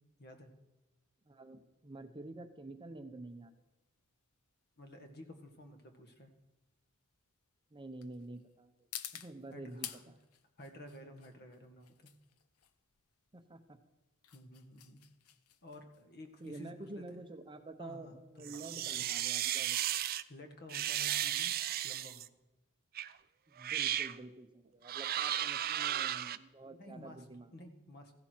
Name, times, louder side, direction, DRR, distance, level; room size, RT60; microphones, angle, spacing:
voice 1, 0.2-0.5 4.8-6.3 9.5-10.0 10.6-12.1 14.3-15.0 15.6-17.0 17.8-18.9 20.3-21.5 21.8-22.2 26.8-27.2 27.5-28.1, left 1 dB, 50° left, 5 dB, 1.7 m, -52 dB
voice 2, 1.3-3.5 7.7-8.9 9.1-10.2 13.3-13.8 16.4-19.9 23.5-27.5, right 2 dB, 20° right, 8 dB, 0.8 m, -49 dB
sound 1, 3.3-20.0, left 11 dB, 85° left, 0.7 m, -53 dB
sound 2, 18.4-20.2 20.7-22.3 23.0-23.1 23.6-24.2 24.9-26.4, right 12 dB, 45° right, 0.4 m, -35 dB
15.5 x 11.5 x 4.6 m, 1.0 s
head